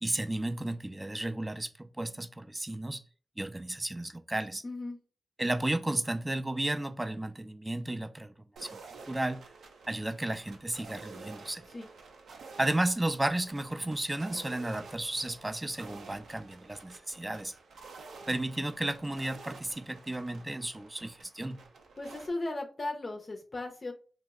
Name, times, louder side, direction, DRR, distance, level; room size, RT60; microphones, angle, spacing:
voice 1, 0.0-3.0 3.4-4.6 5.4-8.8 9.1-9.4 9.9-11.7 12.6-17.5 18.3-21.6, right 1 dB, 20° right, 0.3 m, -33 dB
voice 2, 4.6-5.0 11.7-11.9 22.0-23.9, left 2 dB, 40° left, 0.5 m, -36 dB
sound 1, 8.6-22.3, right 4 dB, 85° right, 0.5 m, -50 dB
2.7 x 2.0 x 3.5 m
cardioid pair, 60°, 0 cm